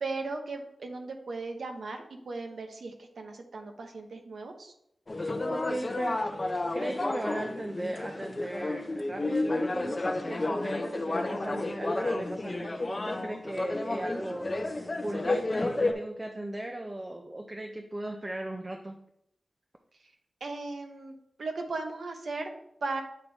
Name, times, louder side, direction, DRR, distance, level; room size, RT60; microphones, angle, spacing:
voice 1, 0.0-4.7 20.0-20.1 20.4-22.5 22.8-23.0, right 3 dB, 75° right, 4 dB, 0.9 m, -37 dB
sound 1, 5.1-15.9, left 2 dB, 30° left, 0.5 m, -31 dB
voice 2, 5.5-19.0, right 1 dB, 25° right, 3 dB, 0.5 m, -38 dB
8.2 x 3.5 x 4.0 m, 0.76 s
wide cardioid pair, 120°, 0 cm